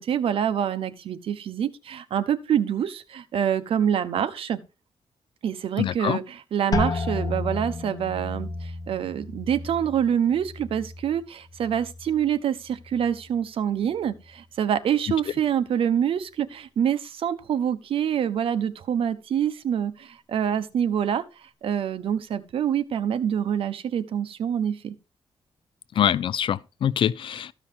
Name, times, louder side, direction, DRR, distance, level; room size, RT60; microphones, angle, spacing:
voice 1, 0.0-4.6 5.4-21.2 21.6-24.9, right 9 dB, 75° right, 1.1 m, -26 dB
voice 2, 5.8-6.2 26.0-27.5, left 9 dB, 65° left, 0.4 m, -24 dB
sound 1, 6.7-12.4 12.7-13.4 13.9-14.3, left 3 dB, 40° left, 1.4 m, -33 dB
14.0 x 5.7 x 4.4 m
cardioid pair, 115°, 9 cm